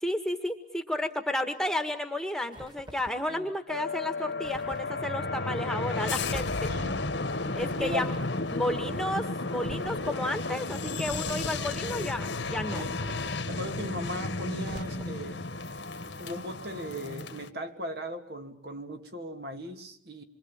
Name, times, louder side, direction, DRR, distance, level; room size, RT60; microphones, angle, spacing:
voice 1, 0.0-6.5 7.5-8.2 8.5-12.9, left 1 dB, 5° left, 7 dB, 1.7 m, -32 dB
sound 1, 2.5-3.3 4.4-4.9 6.1-6.7 7.5-8.4 9.6-10.2 11.0-11.8 13.0-13.7 14.6-15.3, equal, 25° right, 2.9 m, -46 dB
sound 2, 3.7-17.5, left 3 dB, 80° left, 1.7 m, -33 dB
voice 2, 6.7-7.0 7.8-8.1 12.7-12.9 13.5-15.5 16.2-20.2, equal, 55° right, 6 dB, 2.6 m, -38 dB
27.0 x 24.5 x 8.8 m, 0.63 s
head